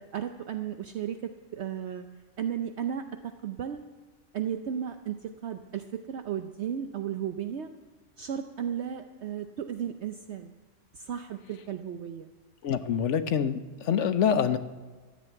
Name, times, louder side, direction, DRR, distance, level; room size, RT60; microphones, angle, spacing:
voice 1, 0.0-2.1 2.4-3.8 4.3-7.7 8.2-10.5 10.9-12.3, right 9 dB, 65° right, 7 dB, 0.9 m, -34 dB
voice 2, 12.6-14.6, left 8 dB, 70° left, 11 dB, 1.1 m, -26 dB
14.0 x 7.6 x 9.1 m, 1.4 s
omnidirectional pair, 1.3 m